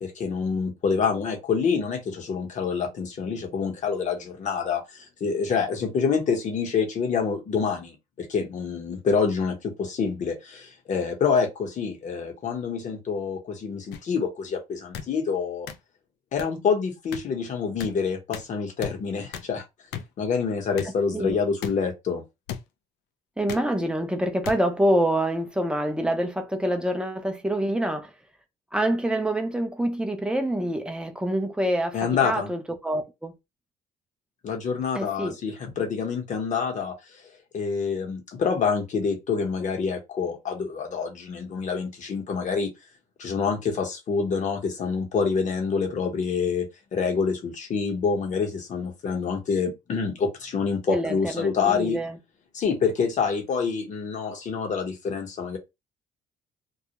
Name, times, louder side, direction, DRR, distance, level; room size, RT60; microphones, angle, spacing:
voice 1, 0.0-15.7 16.3-19.6 20.2-22.2 31.9-32.5 34.4-37.2 37.5-42.7 43.2-52.0 52.5-55.6, left 5 dB, 45° left, 0.9 m, -27 dB
sound 1, 13.9-14.0 14.9-15.1 15.7-15.8 16.4-16.5 17.1-17.2 17.8-17.9 18.3-18.5 18.8-18.9 19.3-19.5 19.9-20.0 20.8-20.9 21.6-21.7 22.5-22.6 23.5-23.7 24.4-24.6 25.4-25.6, left 8 dB, 90° left, 0.4 m, -34 dB
voice 2, 23.4-28.1 28.7-33.3 34.9-35.4 50.9-52.2, right 1 dB, 5° right, 0.5 m, -26 dB
2.3 x 2.1 x 2.8 m
cardioid pair, 110°, 17 cm